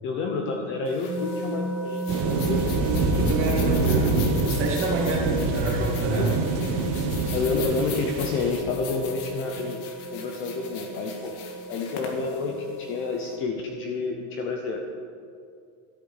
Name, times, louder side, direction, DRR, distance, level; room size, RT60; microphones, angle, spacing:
voice 1, 0.0-2.7 6.2-6.3 7.3-9.8 10.1-11.3 11.7-14.8, left 4 dB, 25° left, 3 dB, 0.8 m, -29 dB
sound 1, 0.9-13.3, left 7 dB, 60° left, 2.1 m, -42 dB
sound 2, 1.1-13.4, right 2 dB, 10° right, 1.6 m, -35 dB
sound 3, 2.1-8.5, right 3 dB, 50° right, 1.7 m, -26 dB
voice 2, 3.1-6.3, right 2 dB, 25° right, -2 dB, 2.6 m, -27 dB
13.0 x 9.0 x 6.5 m, 2.4 s
supercardioid pair, 170°, 48 cm